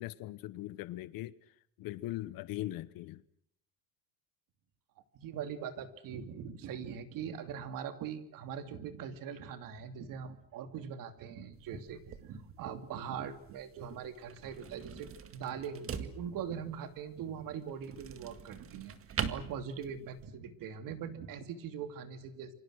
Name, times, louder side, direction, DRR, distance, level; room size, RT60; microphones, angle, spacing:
voice 1, 0.0-3.2, left 16 dB, 75° left, 1.0 m, -40 dB
voice 2, 5.1-22.5, right 7 dB, 65° right, 2.9 m, -42 dB
sound 1, 11.5-20.3, right 7 dB, 40° right, 2.0 m, -44 dB
28.5 x 24.5 x 6.4 m
cardioid pair, 145°, 35 cm